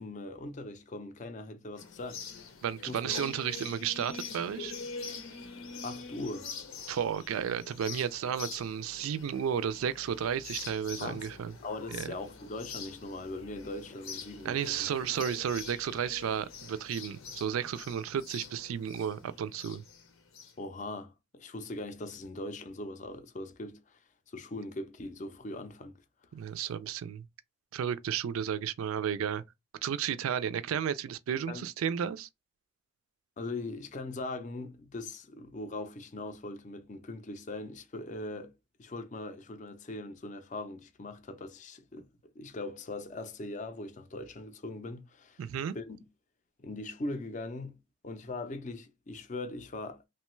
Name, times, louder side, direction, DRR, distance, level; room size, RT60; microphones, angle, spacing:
voice 1, 0.0-2.5 2.9-3.3 5.8-6.5 11.0-11.3 11.6-15.1 20.6-24.0 24.3-26.0 31.5-31.7 33.4-38.5 38.8-45.5 45.7-46.0 46.6-47.8 48.0-50.0, left 2 dB, 35° left, 0.4 m, -40 dB
sound 1, 1.8-20.5, left 5 dB, 80° left, 0.7 m, -45 dB
voice 2, 2.6-4.7 6.9-11.5 11.9-12.1 14.4-19.8 26.3-27.2 27.7-29.4 29.8-32.3 45.4-45.8, right 8 dB, 80° right, 0.3 m, -33 dB
3.0 x 2.2 x 3.0 m
head